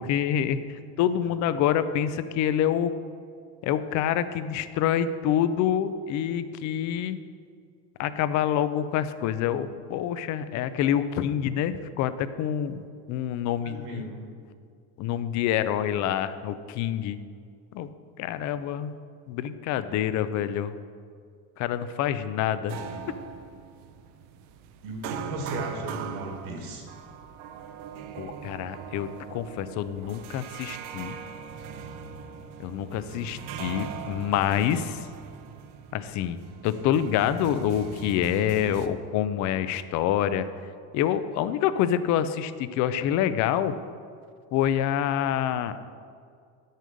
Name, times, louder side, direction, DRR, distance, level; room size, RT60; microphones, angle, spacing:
voice 1, 0.0-2.9 3.6-7.2 8.0-14.1 15.0-17.2 17.7-17.9 18.2-18.9 19.3-20.7 21.6-22.8 28.2-31.2 32.6-35.0 35.9-40.5 40.9-43.7 44.5-45.8, left 10 dB, 40° left, 13 dB, 0.4 m, -27 dB
voice 2, 13.6-14.2 24.8-26.9 32.7-33.4, right 2 dB, 60° right, 1 dB, 2.0 m, -36 dB
sound 1, 22.7-38.9, right 7 dB, 85° right, 0.8 m, -40 dB
9.2 x 6.5 x 5.1 m, 2.2 s
cardioid pair, 150°, 44 cm